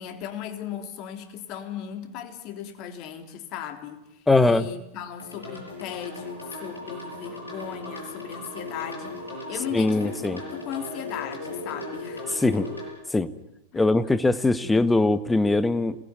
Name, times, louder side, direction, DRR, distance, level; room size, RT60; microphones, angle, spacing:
voice 1, 0.0-12.3 13.7-13.9 14.6-14.8, left 9 dB, 40° left, 6 dB, 3.2 m, -37 dB
voice 2, 4.3-4.7 9.7-10.4 12.3-12.7 13.1-13.3 13.7-16.0, left 2 dB, 10° left, 13 dB, 1.3 m, -21 dB
sound 1, 5.2-12.9, left 2 dB, 80° left, 7.3 m, -37 dB
27.5 x 20.0 x 9.7 m, 0.89 s
figure-of-eight pair, 90°, 0 cm